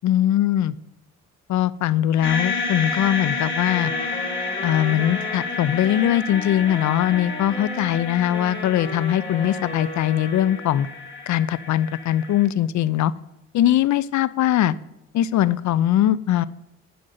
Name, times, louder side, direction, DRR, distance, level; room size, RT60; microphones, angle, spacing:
voice 1, 0.0-0.7 1.5-3.9 4.6-10.9 11.3-13.1 13.5-14.7 15.1-16.4, left 12 dB, 70° left, 18 dB, 0.6 m, -21 dB
sound 1, 2.2-12.5, left 4 dB, 40° left, 2.7 m, -30 dB
Wind instrument woodwind instrument, 3.7-10.8, left 2 dB, 20° left, 2.6 m, -35 dB
12.0 x 5.2 x 7.9 m, 0.86 s
cardioid pair, 90°, 30 cm